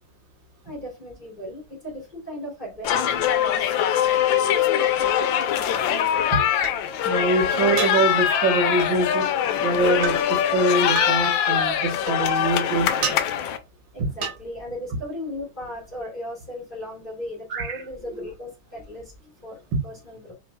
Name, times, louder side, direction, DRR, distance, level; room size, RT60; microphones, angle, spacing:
voice 1, 0.6-6.0 13.9-20.3, left 1 dB, 20° left, 2.3 m, -37 dB
sound 1, 2.8-13.6, left 10 dB, 75° left, 1.3 m, -22 dB
sound 2, 5.4-5.5 6.6-6.7 7.8-8.0 8.8-9.0 10.0-10.2 11.0-11.1 12.1-12.5 13.0-13.2 14.2-14.4, right 7 dB, 80° right, 1.6 m, -29 dB
voice 2, 7.0-9.3 9.6-13.2 17.5-17.8 19.7-19.8, right 2 dB, 65° right, 1.8 m, -24 dB
5.9 x 3.8 x 2.2 m
omnidirectional pair, 2.3 m